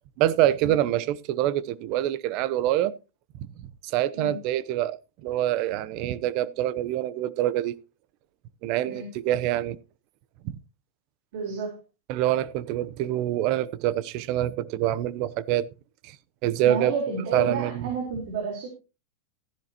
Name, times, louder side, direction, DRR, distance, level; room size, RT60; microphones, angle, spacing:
voice 1, 0.2-3.0 3.8-7.8 8.6-9.8 10.4-10.6 12.1-15.7 16.0-16.2 16.4-16.9 17.3-17.9, right 13 dB, 50° right, 0.8 m, -25 dB
voice 2, 11.3-11.8 16.7-18.7, right 4 dB, 70° right, 4.4 m, -30 dB
15.0 x 11.0 x 2.9 m
supercardioid pair, 125°, 0 cm